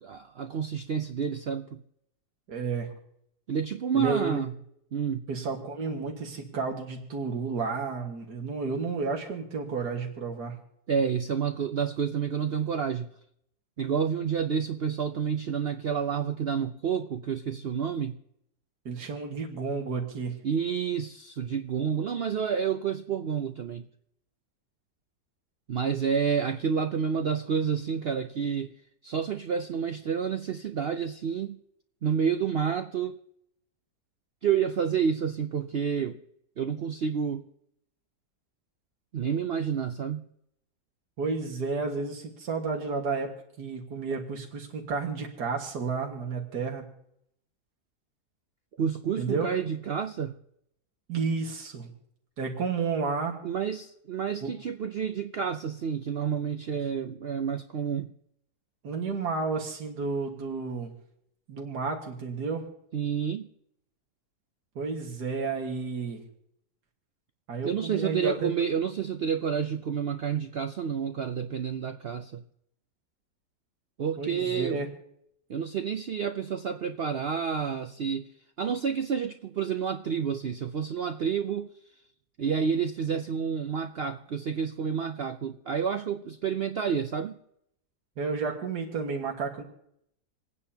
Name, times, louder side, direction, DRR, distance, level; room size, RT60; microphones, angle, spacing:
voice 1, 0.0-1.8 3.5-4.5 4.9-5.2 10.9-13.1 13.8-18.1 20.4-23.8 25.7-28.7 29.0-31.6 32.0-33.2 34.4-36.2 36.6-37.4 39.1-40.2 48.8-50.3 53.4-58.1 62.9-63.5 67.6-72.4 74.0-74.8 75.5-78.3 78.6-81.7 82.4-87.4, right 7 dB, 60° right, 8 dB, 0.6 m, -29 dB
voice 2, 2.5-2.9 3.9-4.4 5.3-10.5 18.9-20.3 41.2-43.3 43.6-46.9 49.2-49.5 51.1-51.9 52.4-53.4 54.4-54.5 58.8-60.9 61.5-62.7 64.8-66.2 67.5-68.5 74.2-74.9 88.2-89.6, right 4 dB, 80° right, 1 dB, 2.3 m, -31 dB
28.0 x 9.6 x 2.8 m, 0.74 s
omnidirectional pair, 1.7 m